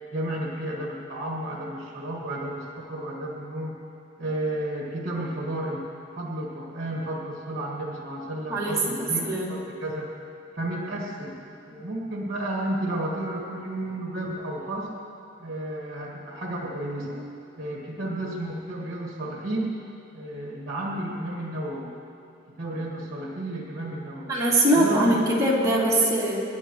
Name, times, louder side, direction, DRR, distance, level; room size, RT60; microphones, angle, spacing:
voice 1, 0.1-3.8 4.2-5.9 6.2-10.1 10.5-11.4 11.7-15.0 15.4-17.2 17.6-19.8 20.1-21.9 22.6-24.4 24.7-25.3, right 1 dB, 45° right, -2 dB, 1.8 m, -32 dB
voice 2, 8.5-9.5 11.7-11.8 24.3-26.4, right 1 dB, 20° right, -7 dB, 2.8 m, -22 dB
26.0 x 10.5 x 3.1 m, 2.6 s
head